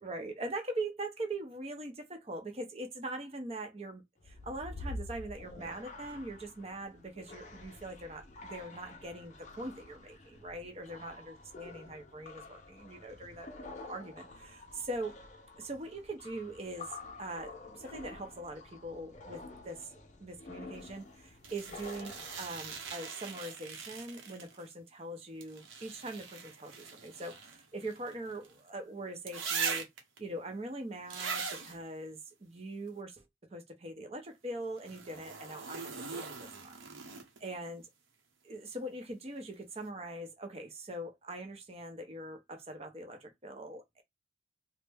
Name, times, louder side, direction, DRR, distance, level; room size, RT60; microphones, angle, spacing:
voice 1, 0.0-15.2 15.6-16.9 17.2-19.9 20.2-29.9 30.2-33.2 33.5-37.8 38.4-44.0, right 1 dB, 30° right, 0.7 m, -42 dB
sound 1, 4.2-22.9, left 2 dB, 35° left, 0.5 m, -49 dB
sound 2, 21.4-24.7 25.4-28.6 29.3-30.2 31.1-31.8 34.8-37.5 39.4-39.5, right 5 dB, 90° right, 0.8 m, -41 dB
3.1 x 2.1 x 3.4 m
head